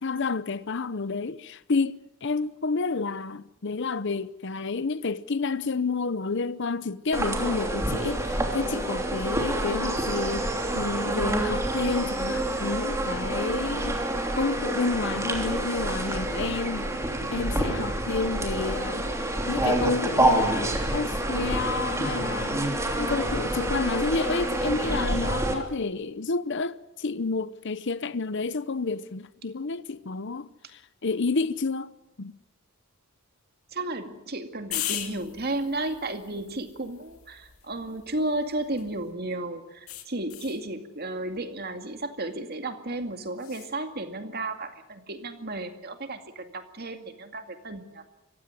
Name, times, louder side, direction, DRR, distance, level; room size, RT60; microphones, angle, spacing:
voice 1, 0.0-14.0 14.3-17.0 17.3-19.1 19.5-22.7 23.0-31.9 32.2-32.3, left 4 dB, 55° left, 0.8 m, -30 dB
sound 1, 7.1-25.5, right 1 dB, 15° right, 3.1 m, -27 dB
voice 2, 33.7-48.0, right 2 dB, 45° right, 2.2 m, -33 dB
sound 2, 34.7-39.1 39.9-40.6 43.4-43.7, left 12 dB, 80° left, 2.3 m, -39 dB
25.5 x 15.5 x 9.6 m
head